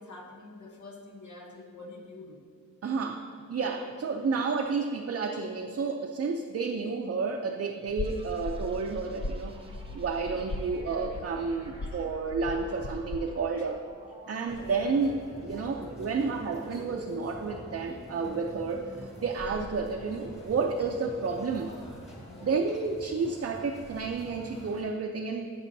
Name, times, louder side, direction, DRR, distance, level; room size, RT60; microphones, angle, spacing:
voice 1, 0.0-2.5 3.4-3.5 3.8-3.9 11.8-12.0 13.6-13.7 14.3-14.4 22.3-22.6, left 2 dB, 65° left, 1 dB, 0.9 m, -47 dB
voice 2, 2.8-9.6 9.9-13.8 14.3-15.1 15.4-18.8 19.2-21.7 22.4-25.5, right 4 dB, 50° right, 1 dB, 0.5 m, -31 dB
sound 1, 7.9-13.3, left 1 dB, 35° left, 0.7 m, -38 dB
sound 2, 8.0-21.6, right 1 dB, 20° right, 0.9 m, -52 dB
sound 3, 14.5-24.8, equal, 20° left, 2.0 m, -45 dB
16.5 x 6.2 x 2.7 m, 2.3 s
wide cardioid pair, 155°, 31 cm